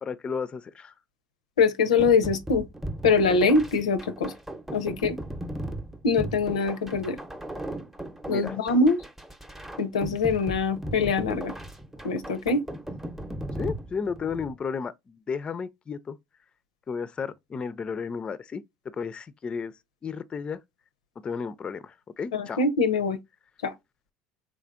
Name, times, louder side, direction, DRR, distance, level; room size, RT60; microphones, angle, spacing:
voice 1, 0.0-0.9 8.3-8.5 13.6-16.2 16.9-18.6 19.0-19.7 20.0-20.6 21.2-22.6, left 5 dB, 30° left, 0.4 m, -33 dB
voice 2, 1.6-2.7 3.0-4.3 4.7-5.2 6.0-7.2 8.3-9.0 9.8-11.5 12.0-12.6 22.3-23.2 23.6-23.7, left 4 dB, 90° left, 0.5 m, -23 dB
sound 1, 2.0-14.5, right 1 dB, 10° right, 0.7 m, -37 dB
3.7 x 3.3 x 2.4 m
hypercardioid pair, 75°, 3 cm